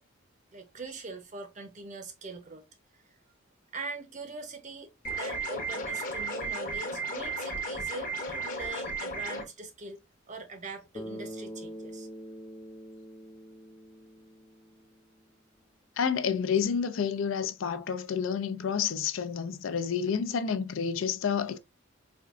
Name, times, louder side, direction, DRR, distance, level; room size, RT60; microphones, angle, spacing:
voice 1, 0.5-2.6 3.7-10.0 10.3-12.1, right 3 dB, 40° right, 0.7 m, -42 dB
sound 1, 5.0-9.4, right 2 dB, 45° left, 0.9 m, -34 dB
Bass guitar, 10.9-15.2, equal, 15° left, 0.3 m, -44 dB
voice 2, 16.0-21.6, left 7 dB, 75° left, 0.4 m, -29 dB
4.3 x 2.4 x 2.4 m
head